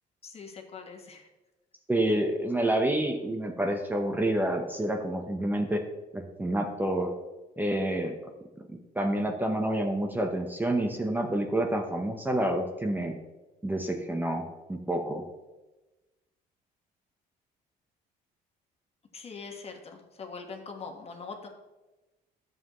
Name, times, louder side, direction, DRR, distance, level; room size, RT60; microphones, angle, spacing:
voice 1, 0.2-1.3 2.1-2.2 19.1-21.5, left 4 dB, 35° left, 3 dB, 1.5 m, -42 dB
voice 2, 1.9-5.8 6.1-7.1 7.6-8.2 8.9-13.2 13.6-15.3, right 1 dB, 10° right, 3 dB, 0.8 m, -28 dB
11.0 x 7.5 x 3.1 m, 1.1 s
cardioid pair, 110°, 17 cm